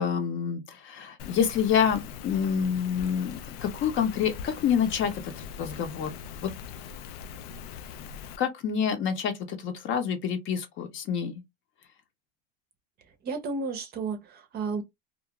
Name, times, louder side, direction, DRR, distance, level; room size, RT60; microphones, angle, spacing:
voice 1, 0.0-6.2 6.4-6.5 8.4-11.4, left 7 dB, 40° left, 0.7 m, -27 dB
Rain, 1.2-8.4, left 7 dB, 85° left, 0.5 m, -41 dB
voice 2, 13.2-14.8, right 4 dB, 35° right, 0.6 m, -32 dB
2.4 x 2.1 x 2.8 m
supercardioid pair, 130°, 29 cm